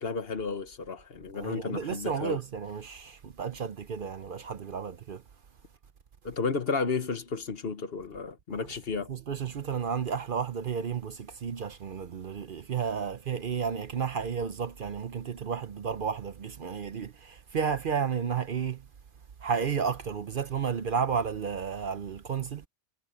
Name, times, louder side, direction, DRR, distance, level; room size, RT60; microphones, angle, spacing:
voice 1, 0.0-2.4 6.2-9.1, left 4 dB, 55° left, 1.3 m, -32 dB
voice 2, 1.3-5.2 8.5-8.7 9.1-18.9 19.4-22.7, right 6 dB, 50° right, 0.8 m, -32 dB
omnidirectional pair, 1.2 m